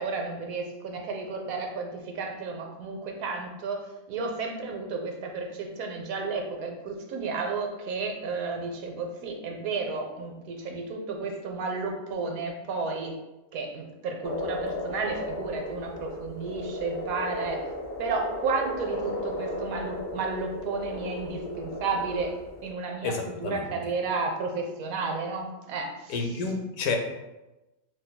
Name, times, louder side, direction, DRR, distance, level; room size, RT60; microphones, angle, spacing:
voice 1, 0.0-13.2 13.5-17.7 18.0-22.4 22.6-26.2, right 4 dB, 75° right, 2 dB, 1.0 m, -32 dB
sound 1, 14.2-22.7, left 1 dB, 25° left, 0.6 m, -35 dB
voice 2, 23.0-23.6 26.1-27.0, left 4 dB, 80° left, 3 dB, 1.1 m, -30 dB
6.1 x 2.6 x 2.2 m, 1.0 s
omnidirectional pair, 1.6 m